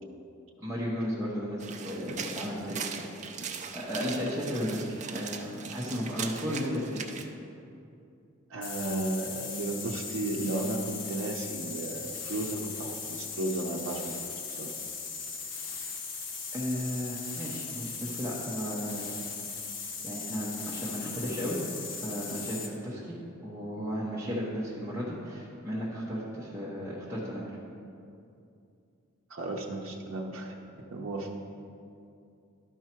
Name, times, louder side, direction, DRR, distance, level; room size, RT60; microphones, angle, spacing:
voice 1, 0.6-3.1 3.7-7.1 16.5-19.1 20.0-21.6 21.9-27.5, equal, 15° right, -8 dB, 0.9 m, -34 dB
sound 1, 1.6-7.3, right 6 dB, 35° right, 0.4 m, -39 dB
voice 2, 8.5-14.2 14.6-14.7 29.3-30.5 30.9-31.3, right 2 dB, 70° right, -1 dB, 0.7 m, -34 dB
sound 2, 8.6-22.8, left 5 dB, 60° left, 0.9 m, -38 dB
11.5 x 4.6 x 4.5 m, 2.5 s
head